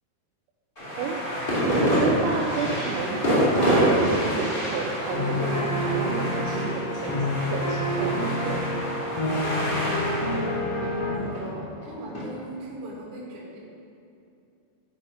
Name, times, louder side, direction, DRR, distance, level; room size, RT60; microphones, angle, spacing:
sound 1, 0.8-12.2, equal, 30° left, 0.9 m, -27 dB
voice 1, 1.7-8.8, right 5 dB, 85° right, 0 dB, 2.3 m, -31 dB
sound 2, 5.1-11.1, left 1 dB, 65° left, 1.5 m, -28 dB
voice 2, 11.0-13.6, equal, 45° right, -5 dB, 2.0 m, -38 dB
10.0 x 5.5 x 5.0 m, 2.6 s
omnidirectional pair, 4.8 m